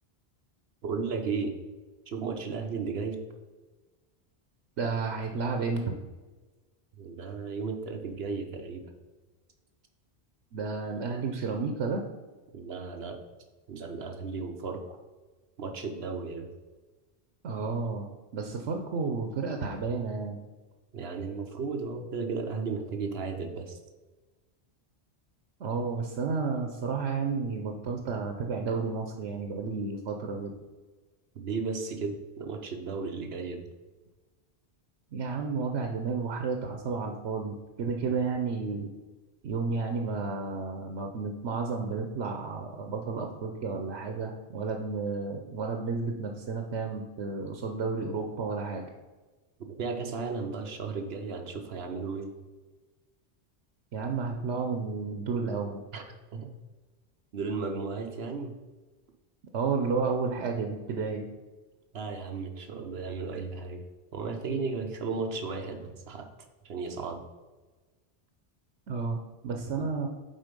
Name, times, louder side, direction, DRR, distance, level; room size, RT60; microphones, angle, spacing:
voice 1, 0.8-1.6 2.1-3.2 7.0-8.9 12.5-13.2 13.7-15.0 15.6-16.5 20.9-23.8 31.4-33.7 49.6-52.3 55.9-56.0 56.3-56.5 57.3-58.5 61.9-63.8 64.1-66.3 66.6-67.2 69.8-69.9, right 4 dB, 65° right, 5 dB, 1.1 m, -34 dB
voice 2, 4.8-5.9 10.5-12.0 17.4-18.1 18.3-20.4 25.6-30.5 35.1-38.9 39.4-48.9 53.9-55.8 59.5-61.3 68.9-70.1, right 4 dB, 90° right, 4 dB, 1.1 m, -31 dB
7.8 x 4.5 x 5.2 m, 1.2 s
omnidirectional pair, 1.1 m